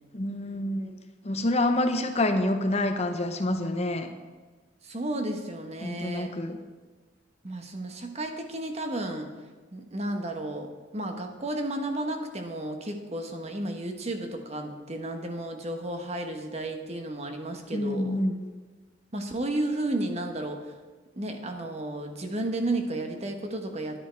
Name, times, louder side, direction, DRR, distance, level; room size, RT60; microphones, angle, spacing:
voice 1, 0.1-1.0 1.2-4.1 5.8-6.6 17.7-18.4, left 1 dB, 35° left, 6 dB, 0.8 m, -27 dB
voice 2, 4.8-6.3 7.4-9.3 9.7-18.2 19.1-20.7 21.2-24.0, right 1 dB, 35° right, 4 dB, 1.1 m, -33 dB
10.5 x 10.0 x 4.6 m, 1.3 s
head